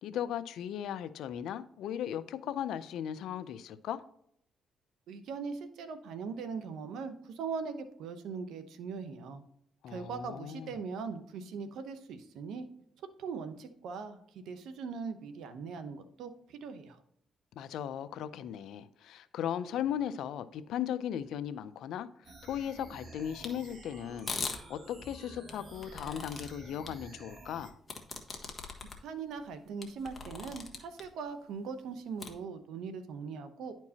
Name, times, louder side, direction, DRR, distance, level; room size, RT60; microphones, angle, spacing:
voice 1, 0.0-4.0 9.8-10.7 17.6-27.8, left 10 dB, 80° left, 0.5 m, -37 dB
voice 2, 5.1-9.4 9.9-12.7 13.2-17.0 29.0-33.7, right 5 dB, 80° right, 0.9 m, -40 dB
sound 1, 22.2-27.7, right 2 dB, 45° right, 1.4 m, -51 dB
sound 2, 23.4-23.5 24.2-24.6 25.5-26.5 26.9-27.0 27.9-29.0 29.4-29.5 29.8-31.0 32.2-32.3, left 4 dB, 30° left, 1.4 m, -39 dB
10.5 x 4.5 x 2.8 m
cardioid pair, 90°, 0 cm